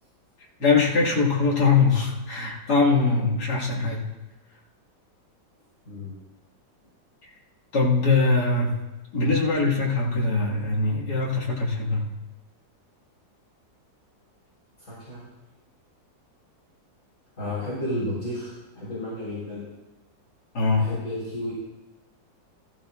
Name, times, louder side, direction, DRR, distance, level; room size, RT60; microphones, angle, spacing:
voice 1, 0.6-4.1 7.2-7.3 7.7-8.7 9.1-12.0 20.5-20.9, left 4 dB, 55° left, -3 dB, 2.6 m, -22 dB
voice 2, 14.8-15.2 17.4-19.7 20.8-21.5, left 1 dB, 40° left, -9 dB, 4.5 m, -32 dB
15.5 x 14.0 x 2.5 m, 1.0 s
omnidirectional pair, 2.0 m